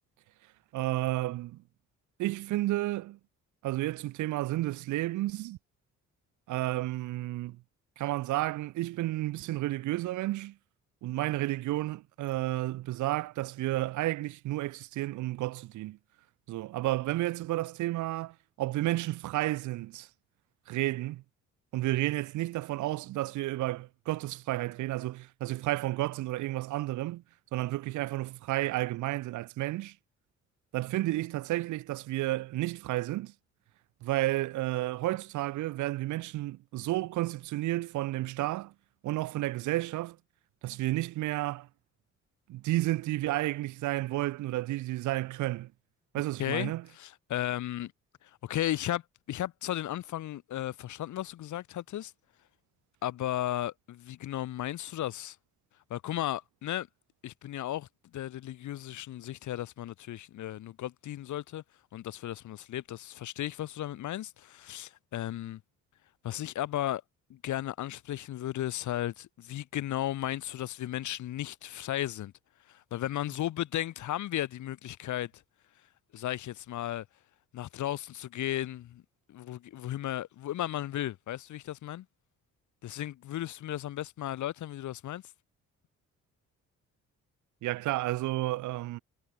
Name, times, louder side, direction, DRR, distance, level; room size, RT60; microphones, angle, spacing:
voice 1, 0.7-1.6 2.2-3.2 3.6-5.6 6.5-7.6 8.0-10.5 11.0-16.0 16.5-20.1 20.7-21.2 21.7-27.2 27.5-29.9 30.7-33.3 34.0-38.7 39.0-40.2 40.6-41.7 42.5-45.7 46.1-46.8 87.6-89.0, right 17 dB, 75° right, 0.6 m, -31 dB
voice 2, 46.4-47.9 48.2-49.0 49.3-52.1 53.0-55.4 55.9-56.9 57.2-57.9 58.1-61.6 61.9-65.6 66.2-67.0 67.3-72.3 72.7-75.3 76.1-77.1 77.5-79.0 79.3-82.1 82.8-85.2, left 13 dB, 75° left, 1.8 m, -35 dB
cardioid pair, 90°, 30 cm